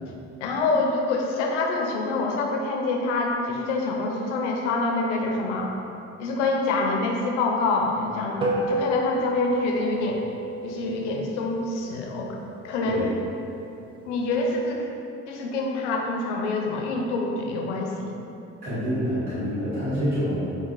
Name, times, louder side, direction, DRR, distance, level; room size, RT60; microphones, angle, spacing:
voice 1, 0.4-5.7 6.2-10.2 10.6-12.4 12.6-13.1 14.1-14.9 15.3-18.1, left 3 dB, 85° left, 0 dB, 0.5 m, -26 dB
sound 1, 8.4-13.1, right 1 dB, 15° right, 0.6 m, -30 dB
voice 2, 18.6-20.6, equal, 70° right, -15 dB, 1.3 m, -27 dB
4.6 x 2.5 x 2.5 m, 2.8 s
hypercardioid pair, 55°, 35 cm